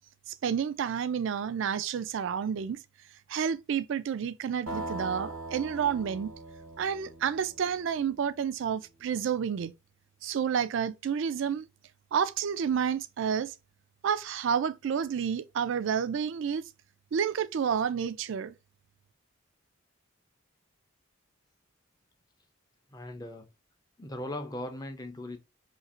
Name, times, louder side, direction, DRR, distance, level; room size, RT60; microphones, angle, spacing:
voice 1, 0.3-2.8 3.3-6.3 6.8-9.7 10.2-11.7 12.1-13.5 14.0-16.7 17.1-18.5, right 7 dB, 60° right, 0.3 m, -30 dB
sound 1, 4.7-8.4, right 1 dB, 90° right, 1.1 m, -41 dB
voice 2, 22.9-23.5 24.0-25.4, left 1 dB, 15° left, 0.5 m, -38 dB
2.8 x 2.5 x 4.1 m
head